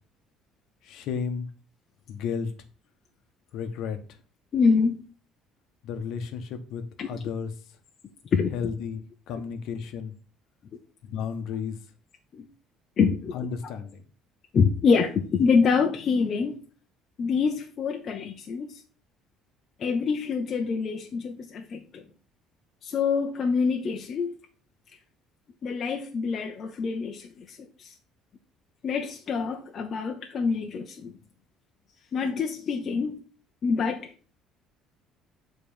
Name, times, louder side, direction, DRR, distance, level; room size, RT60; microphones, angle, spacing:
voice 1, 0.8-1.5 2.1-2.5 3.5-4.2 5.8-7.5 8.5-10.1 11.0-11.8 13.3-14.0, left 6 dB, 70° left, 1.2 m, -33 dB
voice 2, 4.5-5.0 7.0-7.1 8.3-8.5 12.3-12.5 13.0-13.3 14.5-16.6 17.2-18.8 19.8-22.0 22.8-24.3 25.6-27.9 28.8-31.1 32.1-33.2 33.6-34.3, left 5 dB, 45° left, 0.9 m, -26 dB
7.1 x 4.1 x 5.5 m
cardioid pair, 120°, 0 cm